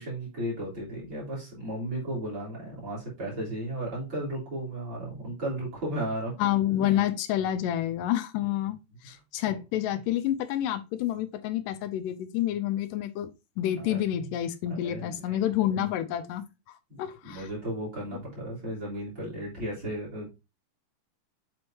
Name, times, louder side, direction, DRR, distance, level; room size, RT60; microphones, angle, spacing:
voice 1, 0.0-6.3 8.4-8.5 9.0-9.2 13.8-14.3 14.7-15.4 16.9-20.3, right 1 dB, 35° right, -6 dB, 3.8 m, -35 dB
voice 2, 6.4-8.8 9.0-13.3 13.6-16.4 17.0-17.5, left 12 dB, 85° left, 10 dB, 2.2 m, -28 dB
7.8 x 4.4 x 2.8 m, 0.27 s
omnidirectional pair, 3.8 m